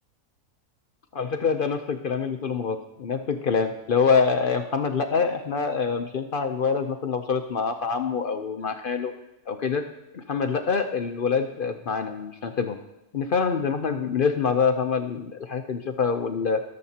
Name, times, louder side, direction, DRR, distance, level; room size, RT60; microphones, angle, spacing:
voice 1, 1.1-9.1 9.5-9.9 10.1-12.8 13.1-16.6, left 5 dB, 55° left, 5 dB, 0.6 m, -25 dB
19.0 x 7.5 x 2.8 m, 0.90 s
omnidirectional pair, 1.6 m